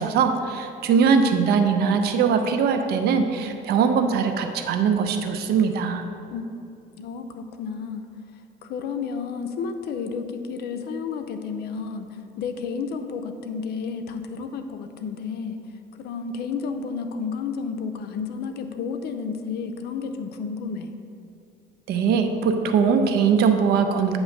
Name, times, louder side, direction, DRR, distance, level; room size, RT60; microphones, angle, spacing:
voice 1, 0.0-6.0 21.9-24.2, right 6 dB, 70° right, 7 dB, 0.6 m, -21 dB
voice 2, 7.0-8.1 8.6-12.1 12.4-15.6 16.0-20.9, left 5 dB, 70° left, 7 dB, 0.6 m, -31 dB
8.8 x 3.1 x 6.4 m, 2.5 s
cardioid pair, 110°, 17 cm